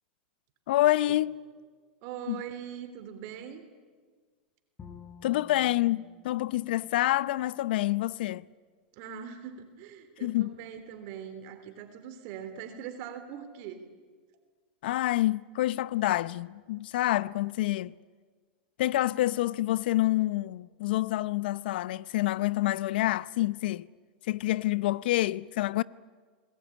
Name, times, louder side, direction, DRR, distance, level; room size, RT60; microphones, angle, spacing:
voice 1, 0.7-1.4 2.3-2.4 5.2-8.4 10.2-10.6 14.8-17.9 18.8-23.9 24.3-25.8, left 16 dB, 70° left, 0.7 m, -27 dB
voice 2, 2.0-3.6 8.9-13.9, right 8 dB, 55° right, 3.3 m, -42 dB
Bowed string instrument, 4.8-7.9, left 7 dB, 25° left, 4.5 m, -52 dB
27.5 x 21.0 x 9.9 m
hypercardioid pair, 115°, 5 cm